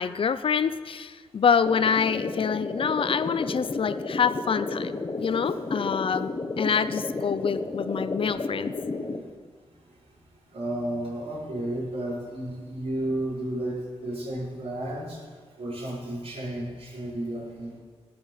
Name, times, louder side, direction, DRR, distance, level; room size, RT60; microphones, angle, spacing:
voice 1, 0.0-6.3 6.6-8.7, left 6 dB, 55° left, 14 dB, 0.6 m, -26 dB
sound 1, 1.7-9.2, left 3 dB, 40° left, 1.2 m, -32 dB
voice 2, 10.5-15.2 15.6-17.8, right 1 dB, 65° right, -6 dB, 5.1 m, -32 dB
17.5 x 6.1 x 7.3 m, 1.5 s
wide cardioid pair, 105°, 11 cm